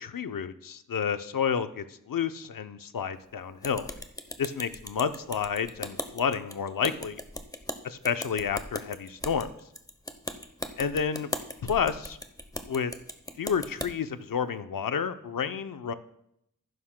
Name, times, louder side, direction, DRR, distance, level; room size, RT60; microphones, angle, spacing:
voice 1, 0.0-3.9 4.4-7.2 7.8-9.5 10.8-11.3 11.6-12.2 12.7-12.9 13.4-15.9, left 7 dB, 90° left, 11 dB, 0.6 m, -30 dB
sound 1, 3.6-13.9, left 1 dB, 10° left, 0.8 m, -38 dB
14.5 x 11.5 x 2.2 m, 0.77 s
wide cardioid pair, 85°, 33 cm